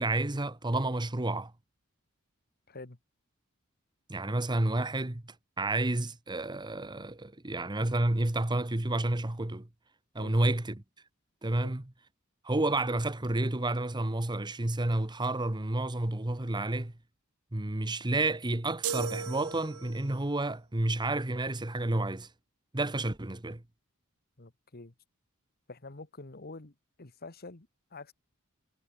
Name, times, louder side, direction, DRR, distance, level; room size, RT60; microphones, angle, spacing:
voice 1, 0.0-1.5 4.1-9.7 10.1-10.8 11.4-11.9 12.4-16.9 17.5-22.3 22.7-23.6, right 2 dB, 20° right, 1.1 m, -30 dB
voice 2, 2.7-3.0 10.2-10.4 11.6-11.8 24.4-24.9 25.7-28.1, left 3 dB, 45° left, 1.6 m, -47 dB
sound 1, 18.8-20.2, right 6 dB, 80° right, 1.9 m, -36 dB
head